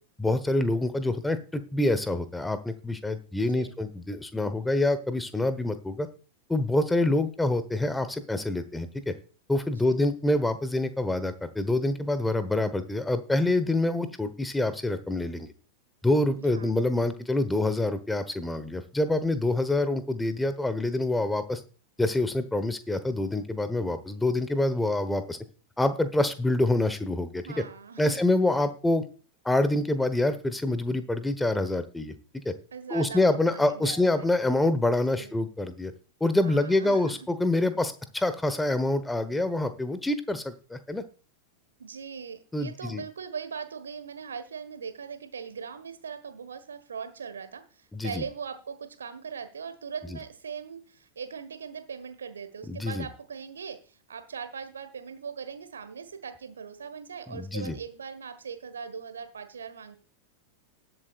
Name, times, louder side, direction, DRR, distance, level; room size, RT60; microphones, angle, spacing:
voice 1, 0.2-6.1 6.5-9.1 9.5-15.5 16.0-21.6 22.0-25.4 25.8-27.4 28.0-29.0 29.4-32.1 32.4-32.5 32.9-35.9 36.2-41.0 42.5-43.0 47.9-48.2 52.7-53.1 57.3-57.8, left 2 dB, 5° left, 11 dB, 1.2 m, -26 dB
voice 2, 3.4-3.8 9.8-10.0 16.4-16.7 27.4-28.3 32.7-34.3 35.2-35.3 36.4-37.3 41.8-60.0, right 6 dB, 70° right, 11 dB, 1.4 m, -40 dB
19.5 x 7.8 x 2.5 m, 0.39 s
figure-of-eight pair, 90°, 0 cm